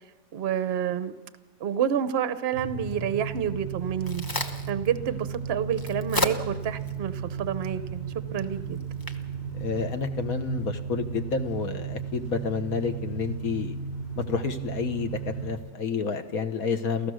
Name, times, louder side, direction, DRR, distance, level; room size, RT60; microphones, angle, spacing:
voice 1, 0.3-1.1 1.6-4.2 4.7-8.8, right 9 dB, 50° right, 12 dB, 0.8 m, -29 dB
sound 1, 2.5-15.5, right 5 dB, 75° left, 5.0 m, -35 dB
Crack, 3.6-10.6, left 1 dB, 20° left, 0.6 m, -36 dB
voice 2, 9.5-13.7 14.1-17.1, left 5 dB, 55° left, 7 dB, 1.5 m, -30 dB
29.0 x 14.5 x 6.4 m, 1.2 s
omnidirectional pair, 2.0 m